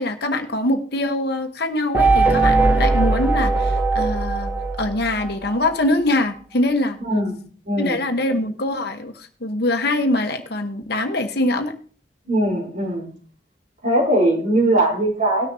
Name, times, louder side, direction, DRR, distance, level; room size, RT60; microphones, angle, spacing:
voice 1, 0.0-4.5 4.8-7.0 7.8-11.7, left 1 dB, 60° left, 6 dB, 1.2 m, -23 dB
sound 1, 1.9-5.7, right 3 dB, 10° right, 0.8 m, -19 dB
voice 2, 7.0-8.0 12.2-13.1 13.8-15.5, right 1 dB, 45° right, -3 dB, 4.0 m, -20 dB
19.0 x 6.5 x 2.8 m, 0.44 s
head